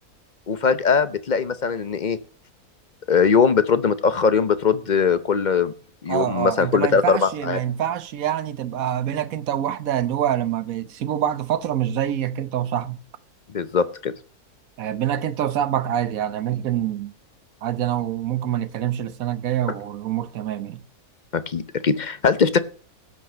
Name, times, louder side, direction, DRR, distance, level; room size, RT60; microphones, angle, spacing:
voice 1, 0.5-2.2 3.1-5.7 6.0-7.6 13.5-14.1 21.3-22.6, left 5 dB, 45° left, 0.6 m, -20 dB
voice 2, 6.1-13.0 14.8-17.1 17.6-20.8, right 10 dB, 70° right, 1.3 m, -25 dB
12.5 x 6.1 x 7.8 m
omnidirectional pair, 1.6 m